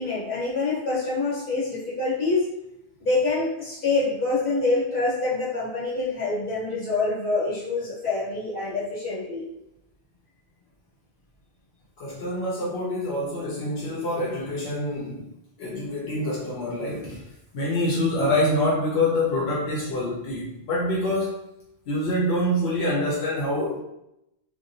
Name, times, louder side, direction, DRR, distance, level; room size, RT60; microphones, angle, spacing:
voice 1, 0.0-2.5 3.0-9.5, left 3 dB, 55° left, -6 dB, 1.2 m, -26 dB
voice 2, 12.0-15.2 15.6-17.2 17.5-21.4 21.9-23.8, left 1 dB, 85° left, -5 dB, 0.9 m, -26 dB
2.9 x 2.1 x 2.5 m, 0.85 s
omnidirectional pair, 1.0 m